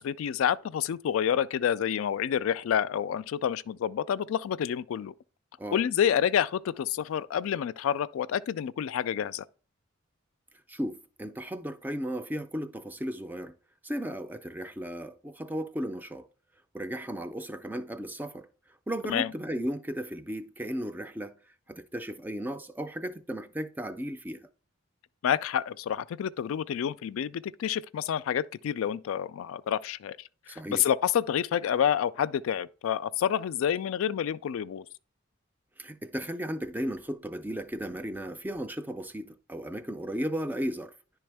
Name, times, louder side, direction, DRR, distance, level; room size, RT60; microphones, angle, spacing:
voice 1, 0.0-5.1 5.7-9.4 19.1-19.3 25.2-30.2 30.5-34.8, left 9 dB, 80° left, 0.3 m, -28 dB
voice 2, 10.7-13.5 13.8-16.2 16.7-18.5 18.9-21.3 21.7-24.4 30.5-30.8 35.8-40.9, equal, 10° right, 0.4 m, -35 dB
10.0 x 3.4 x 3.4 m
head